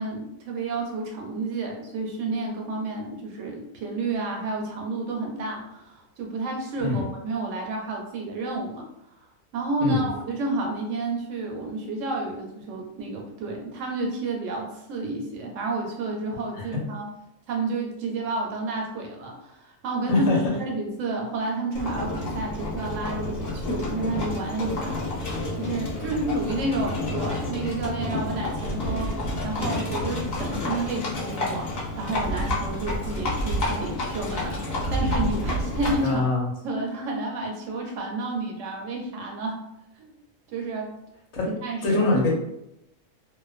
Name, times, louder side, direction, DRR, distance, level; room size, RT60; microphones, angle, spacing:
voice 1, 0.0-8.8 9.5-17.1 17.5-25.1 25.5-29.1 29.4-31.7 32.0-36.2 36.6-39.6 40.0-40.1 40.5-40.9 41.5-42.1, right 2 dB, 75° right, 0 dB, 0.9 m, -30 dB
voice 2, 20.1-20.5 36.0-36.5 41.3-41.5 41.8-42.3, left 2 dB, 90° left, -2 dB, 1.1 m, -23 dB
Livestock farm animals working animals, 21.7-36.1, left 1 dB, 60° left, 0.9 m, -29 dB
2.5 x 2.1 x 2.3 m, 0.84 s
omnidirectional pair, 1.4 m